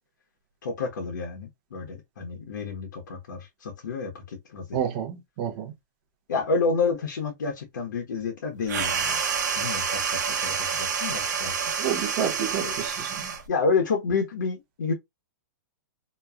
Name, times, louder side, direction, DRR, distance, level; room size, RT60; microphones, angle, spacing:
voice 1, 0.6-4.8 6.3-9.2 9.5-11.5 12.6-12.7 13.5-14.9, left 4 dB, 85° left, 1.1 m, -29 dB
voice 2, 4.7-5.7 11.8-13.3, right 9 dB, 25° right, 0.5 m, -30 dB
sound 1, 8.7-13.5, right 6 dB, 70° right, 0.8 m, -28 dB
3.0 x 2.3 x 2.4 m
hypercardioid pair, 180°, 10 cm